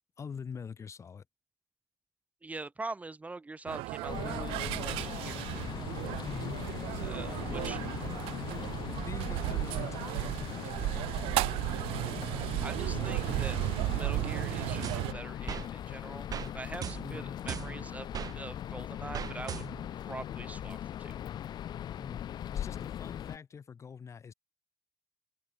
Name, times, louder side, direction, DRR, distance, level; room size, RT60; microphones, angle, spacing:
voice 1, 0.2-1.2 6.2-6.6 7.5-7.7 8.0-8.2 8.9-11.1 17.0-17.4 22.0-22.2 22.5-24.3, left 6 dB, 30° left, 1.5 m, -44 dB
voice 2, 2.4-5.5 7.0-7.8 12.6-13.6 13.9-16.3 16.5-19.7 20.1-21.2, right 3 dB, 15° right, 1.3 m, -43 dB
sound 1, 3.7-15.1, right 20 dB, 90° right, 0.6 m, -34 dB
sound 2, 4.1-23.4, left 10 dB, 50° left, 0.9 m, -40 dB
sound 3, 14.8-15.7 16.3-16.5 16.8-18.3 19.1-20.0, right 8 dB, 45° right, 1.5 m, -39 dB
open air
cardioid pair, 125°, 9 cm